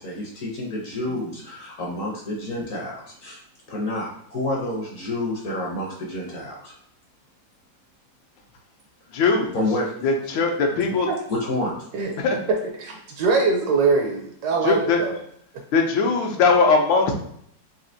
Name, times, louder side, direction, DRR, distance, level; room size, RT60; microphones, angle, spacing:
voice 1, 0.0-3.4 3.7-6.7 9.1-9.2 9.5-9.9 11.3-11.8, left 1 dB, 60° left, -3 dB, 0.9 m, -29 dB
voice 2, 9.1-9.5 10.0-11.1 12.2-12.4 14.6-15.0 15.7-17.1, left 4 dB, 80° left, 2 dB, 1.4 m, -20 dB
voice 3, 12.8-15.2, right 4 dB, 70° right, 1 dB, 1.0 m, -22 dB
4.2 x 2.7 x 2.6 m, 0.68 s
omnidirectional pair, 2.0 m